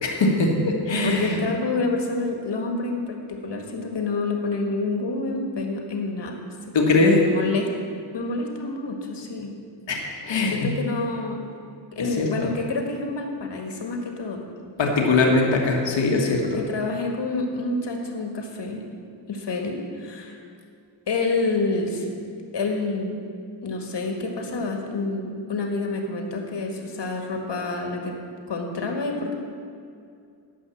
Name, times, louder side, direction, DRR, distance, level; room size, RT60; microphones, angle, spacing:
voice 1, 0.0-1.4 6.7-7.2 9.9-10.7 12.0-12.5 14.8-16.6, left 3 dB, 85° left, 0 dB, 1.6 m, -21 dB
voice 2, 1.0-6.3 6.8-7.7 8.1-9.5 10.5-11.4 11.9-14.4 16.0-18.8 19.3-20.4 21.1-22.1 22.5-23.2 23.6-28.2 28.5-29.3, left 3 dB, 70° left, 2 dB, 1.7 m, -28 dB
12.0 x 5.5 x 7.1 m, 2.4 s
cardioid pair, 60°, 44 cm